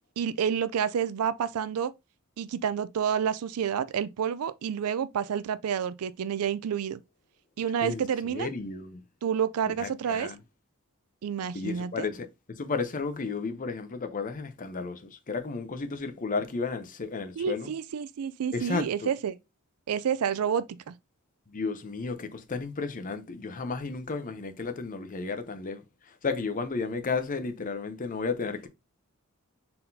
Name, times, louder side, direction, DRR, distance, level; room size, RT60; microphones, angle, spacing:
voice 1, 0.2-1.9 2.4-7.0 7.6-8.5 9.2-10.3 11.2-12.0 17.4-19.4 19.9-20.9, right 8 dB, 90° right, 0.4 m, -29 dB
voice 2, 8.3-9.0 9.8-10.4 11.5-17.7 18.5-19.1 21.5-28.7, left 4 dB, 40° left, 0.6 m, -33 dB
4.2 x 3.8 x 2.7 m
head